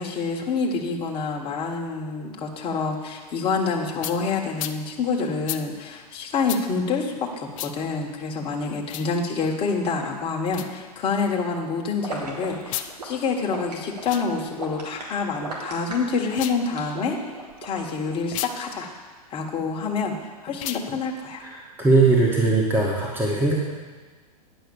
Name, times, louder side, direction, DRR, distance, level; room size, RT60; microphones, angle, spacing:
voice 1, 0.0-17.2 17.6-18.9 19.3-20.2 20.4-21.4, left 4 dB, 25° left, 0 dB, 1.5 m, -27 dB
sound 1, 4.0-4.2 4.6-4.8 5.5-5.6 6.5-6.6 7.5-7.7 8.8-9.1 10.5-10.7 12.6-12.9 14.0-14.3 16.2-16.6 18.3-18.5 20.5-20.9, left 12 dB, 55° left, 0.7 m, -32 dB
sound 2, 12.0-18.1, right 3 dB, 85° right, 2.4 m, -36 dB
voice 2, 21.4-23.6, right 3 dB, 10° right, -3 dB, 1.5 m, -20 dB
10.0 x 5.6 x 7.1 m, 1.4 s
hypercardioid pair, 115°, 21 cm